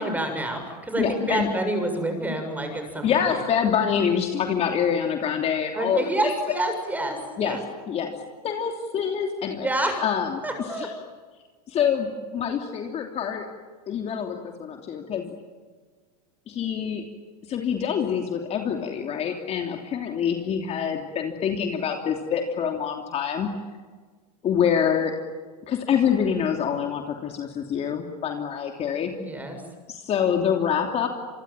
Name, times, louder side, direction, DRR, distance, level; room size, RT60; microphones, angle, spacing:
voice 1, 0.0-3.1 5.7-7.6 9.6-9.9 10.4-10.9 29.1-29.6, right 1 dB, 10° right, 5 dB, 6.8 m, -28 dB
voice 2, 1.0-1.5 3.0-6.3 7.4-7.6 7.9-8.1 8.4-9.7 10.0-10.4 10.8-10.9 11.7-13.5 13.9-15.3 16.5-17.0 17.5-23.5 24.4-25.1 25.7-29.1 29.9-31.1, left 7 dB, 30° left, 3 dB, 3.0 m, -26 dB
27.5 x 23.5 x 9.1 m, 1.4 s
supercardioid pair, 125°, 20 cm